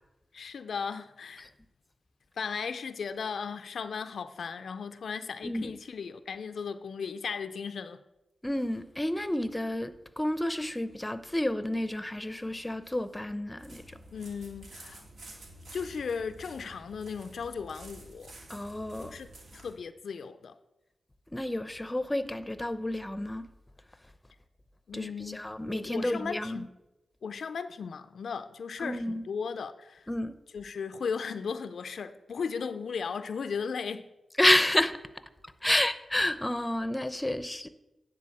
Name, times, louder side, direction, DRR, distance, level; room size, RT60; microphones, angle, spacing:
voice 1, 0.3-1.5 2.4-8.0 14.1-15.0 15.7-18.3 19.0-20.6 24.9-25.4 25.7-26.7 27.2-30.1 30.5-34.1 35.7-35.8, left 6 dB, 80° left, 0.4 m, -36 dB
voice 2, 5.4-5.8 8.4-14.0 18.5-19.2 21.3-23.5 24.9-26.7 28.8-29.2 30.1-30.3 34.4-34.9 35.6-37.7, left 1 dB, 15° left, 0.6 m, -30 dB
sound 1, 13.6-19.7, right 1 dB, 80° right, 2.1 m, -50 dB
9.7 x 4.1 x 7.1 m
cardioid pair, 45°, 0 cm